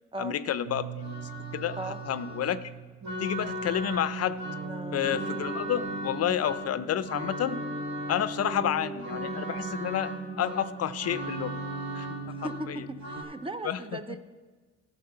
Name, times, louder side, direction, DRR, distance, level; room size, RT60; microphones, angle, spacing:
voice 1, 0.2-1.2 1.5-2.7 3.2-4.5 4.9-7.6 8.1-10.1 10.4-11.6 11.9-12.1 12.7-12.8 13.6-13.8, left 10 dB, 55° left, 14 dB, 0.5 m, -30 dB
sound 1, 0.6-13.2, right 2 dB, 65° right, 1.7 m, -36 dB
voice 2, 4.6-5.1 12.2-14.2, right 2 dB, 20° right, 10 dB, 0.6 m, -38 dB
11.5 x 5.1 x 6.7 m, 1.3 s
cardioid pair, 90°, 30 cm